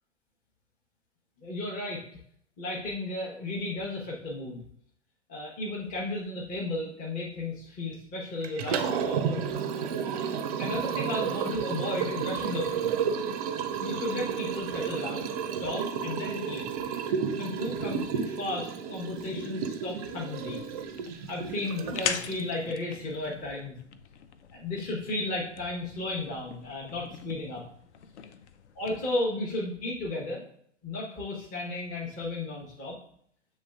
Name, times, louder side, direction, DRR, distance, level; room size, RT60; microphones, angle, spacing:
voice 1, 1.4-2.0 2.6-4.6 5.3-9.4 10.6-12.9 13.8-15.3 15.6-16.7 17.4-20.6 21.3-23.8 24.5-27.6 28.8-30.4 30.8-33.0, left 2 dB, 25° left, -3 dB, 0.8 m, -34 dB
Liquid, 8.4-22.5, right 7 dB, 35° right, 0.4 m, -32 dB
sound 1, 20.6-29.1, left 7 dB, 70° left, 0.5 m, -41 dB
7.2 x 3.2 x 2.3 m, 0.64 s
figure-of-eight pair, 95°, 36 cm